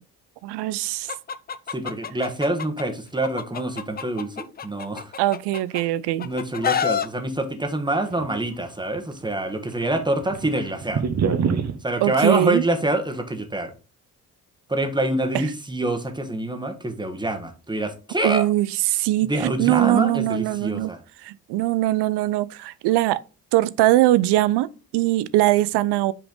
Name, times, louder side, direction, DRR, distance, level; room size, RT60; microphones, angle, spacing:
voice 1, 0.4-1.1 5.2-6.3 12.0-12.6 18.2-18.7 18.9-20.9 21.2-23.2 23.5-26.1, right 16 dB, 55° right, 0.6 m, -21 dB
Chicken rooster, 1.1-2.8 3.2-5.8 6.2-7.1, left 8 dB, 20° left, 0.4 m, -28 dB
voice 2, 1.7-5.1 6.2-11.0 11.8-13.7 14.7-18.5 19.2-21.0, right 1 dB, 10° right, 1.4 m, -26 dB
sound 1, 8.1-9.0 9.2-9.3 9.7-11.8, right 6 dB, 35° right, 1.0 m, -25 dB
5.8 x 5.0 x 3.8 m
figure-of-eight pair, 45°, 48 cm